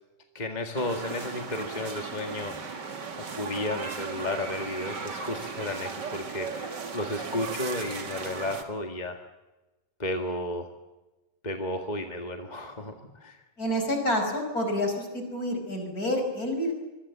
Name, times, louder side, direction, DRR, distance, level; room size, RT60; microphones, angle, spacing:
voice 1, 0.4-2.9 3.4-9.2 10.0-10.7 11.4-12.9 13.2-13.4, left 1 dB, 25° left, 4 dB, 1.8 m, -33 dB
sound 1, 0.8-8.6, right 5 dB, 65° right, 2.8 m, -36 dB
voice 2, 13.6-16.7, left 1 dB, 50° left, 4 dB, 5.9 m, -28 dB
25.0 x 23.0 x 7.4 m, 1.1 s
omnidirectional pair, 2.0 m